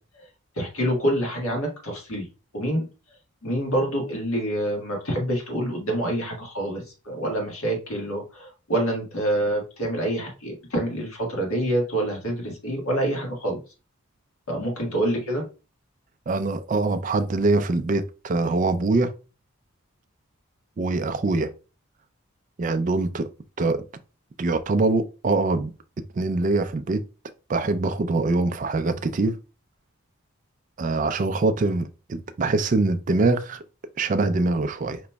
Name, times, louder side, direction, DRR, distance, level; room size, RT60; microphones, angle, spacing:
voice 1, 0.5-2.2 2.5-2.9 3.4-13.6 14.5-15.5, right 1 dB, 80° left, 1.5 m, -26 dB
voice 2, 16.3-19.1 20.8-21.5 22.6-23.3 23.6-23.8 24.4-25.7 26.1-27.0 27.5-29.4 30.8-33.6 34.0-35.0, right 3 dB, 35° right, 0.3 m, -23 dB
5.0 x 3.0 x 2.2 m
head